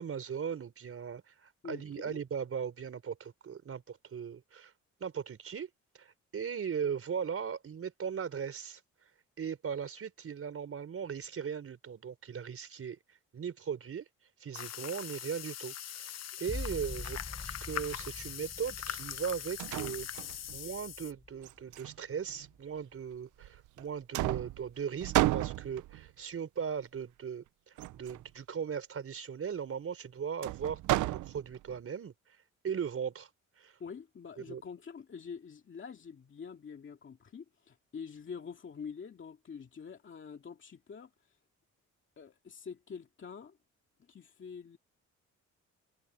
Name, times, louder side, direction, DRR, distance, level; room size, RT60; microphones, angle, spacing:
voice 1, 0.0-4.7 5.0-5.7 6.0-8.8 9.4-13.0 13.3-14.0 14.4-20.1 20.5-32.1 32.6-33.3 33.6-33.8 34.4-34.6, right 7 dB, 50° right, 4.6 m, -38 dB
voice 2, 1.6-2.2 33.8-41.4 42.2-43.6 44.0-44.8, left 6 dB, 40° left, 2.2 m, -46 dB
sound 1, 14.5-21.1, left 10 dB, 60° left, 1.1 m, -42 dB
sound 2, 16.5-21.9 22.4-23.0, left 2 dB, 15° left, 1.0 m, -45 dB
sound 3, 19.2-19.3 19.6-20.7 21.4-22.5 23.4-23.8 24.1-26.1 27.8-28.3 30.4-31.8, right 17 dB, 80° right, 0.6 m, -33 dB
cardioid pair, 90°, 30 cm